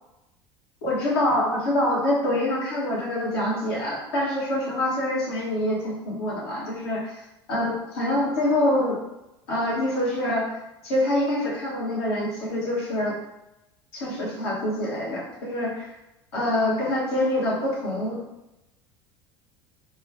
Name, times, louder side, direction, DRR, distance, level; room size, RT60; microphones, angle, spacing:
voice 1, 0.8-7.2 7.5-9.0 9.5-10.6 10.8-13.1 13.9-15.9 16.3-18.2, left 1 dB, 70° left, -4 dB, 1.2 m, -25 dB
3.0 x 2.4 x 3.4 m, 0.91 s
figure-of-eight pair, 70°, 14 cm